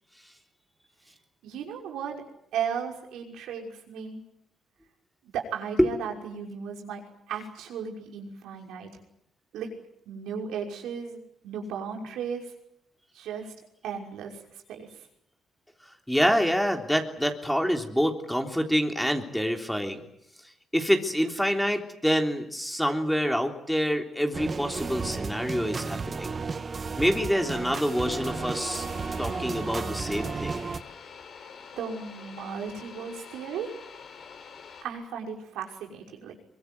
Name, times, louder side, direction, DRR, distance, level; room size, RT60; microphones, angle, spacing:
voice 1, 1.4-2.1 2.5-4.2 5.2-8.9 9.5-9.7 10.1-12.5 13.1-13.5 13.8-14.4 14.7-15.0 31.8-33.7 34.8-36.3, right 7 dB, 85° right, 2 dB, 5.8 m, -35 dB
voice 2, 16.1-20.0 20.7-26.4 27.0-28.9 29.2-30.7, equal, ahead, 4 dB, 3.5 m, -26 dB
sound 1, 24.3-30.8, right 4 dB, 35° right, 1.8 m, -33 dB
sound 2, 27.7-34.9, left 6 dB, 60° left, 5.4 m, -46 dB
24.0 x 22.5 x 9.5 m, 0.77 s
cardioid pair, 90°, 0 cm